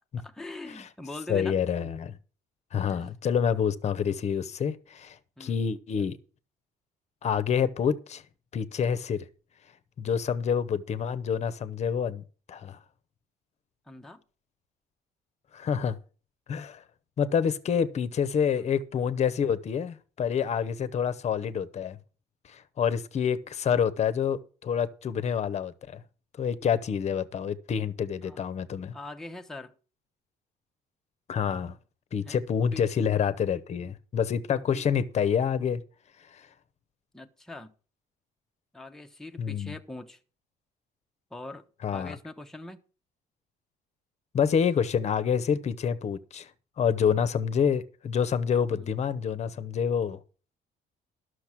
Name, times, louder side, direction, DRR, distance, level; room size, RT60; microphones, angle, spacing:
voice 1, 0.2-1.6 2.8-3.1 5.4-5.6 13.9-14.2 18.5-18.7 28.2-28.4 28.9-29.7 32.2-32.4 32.7-32.8 34.7-34.8 37.1-37.7 38.7-40.2 41.3-42.8 48.7-49.0, left 2 dB, 5° left, 0.8 m, -42 dB
voice 2, 1.3-2.2 2.7-6.2 7.2-8.2 8.5-9.3 10.0-12.8 15.5-16.0 16.5-16.8 17.2-22.0 22.5-26.0 26.4-28.9 31.3-31.8 32.1-35.8 36.3-36.5 39.4-39.7 41.8-42.2 44.3-46.5 46.8-50.2, left 7 dB, 40° left, 0.8 m, -27 dB
12.0 x 6.4 x 6.0 m
cardioid pair, 110°, 17 cm